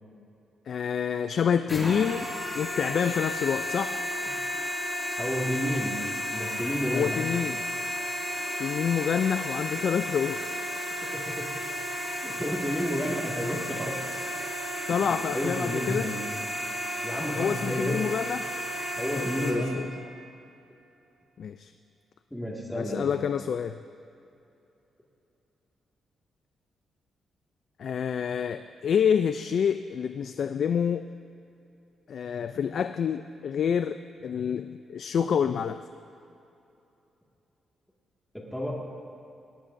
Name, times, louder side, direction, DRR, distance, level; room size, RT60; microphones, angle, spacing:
voice 1, 0.7-2.3 2.6-4.0 6.9-7.6 8.6-10.4 14.9-16.1 17.4-18.5 19.1-19.9 21.4-21.7 22.7-23.8 27.8-31.1 32.1-35.8, left 7 dB, 65° left, 10 dB, 0.3 m, -28 dB
sound 1, 1.7-19.5, equal, 20° left, 3.7 m, -33 dB
voice 2, 5.2-6.0 6.3-7.2 11.1-11.5 12.2-14.2 14.9-16.2 17.0-18.0 19.0-19.9 22.3-23.1 38.5-38.8, equal, 5° left, -3 dB, 1.9 m, -31 dB
18.5 x 18.5 x 2.6 m, 2.8 s
cardioid pair, 100°, 0 cm